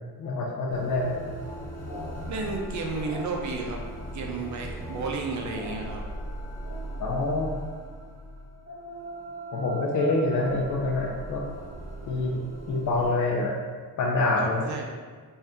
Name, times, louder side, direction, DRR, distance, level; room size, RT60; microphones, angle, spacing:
voice 1, 0.2-1.2 7.0-7.6 9.5-11.4 12.1-12.4 12.7-13.6 14.0-14.6, left 2 dB, 50° left, -3 dB, 0.5 m, -26 dB
sound 1, 0.7-13.1, right 1 dB, 10° right, 1.0 m, -38 dB
voice 2, 2.3-3.8 4.1-6.0 14.4-14.8, right 3 dB, 50° right, 1 dB, 0.5 m, -32 dB
3.3 x 2.7 x 3.5 m, 1.5 s
wide cardioid pair, 180°, 38 cm